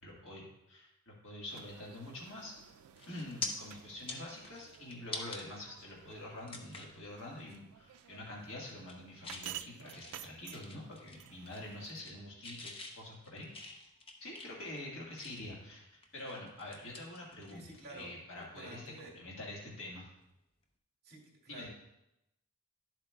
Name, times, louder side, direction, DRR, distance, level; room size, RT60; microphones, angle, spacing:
voice 1, 0.0-2.5 3.1-13.5 14.2-20.1 21.5-21.7, left 1 dB, 60° left, -4 dB, 1.6 m, -46 dB
sound 1, 1.5-12.1, right 12 dB, 85° right, 0.4 m, -53 dB
sound 2, 2.4-2.6 3.0-3.5 3.9-5.4 5.9-6.0 6.5-7.0 7.4-7.6 7.9-8.3 8.7-9.5 9.9-11.2 11.5-12.2 12.4-15.6 16.0-17.9 18.1-18.3 20.2-20.4, left 3 dB, 25° left, 0.7 m, -46 dB
voice 2, 17.5-19.1 21.0-21.7, right 2 dB, 45° right, -2 dB, 2.2 m, -51 dB
11.0 x 7.7 x 2.3 m, 0.87 s
head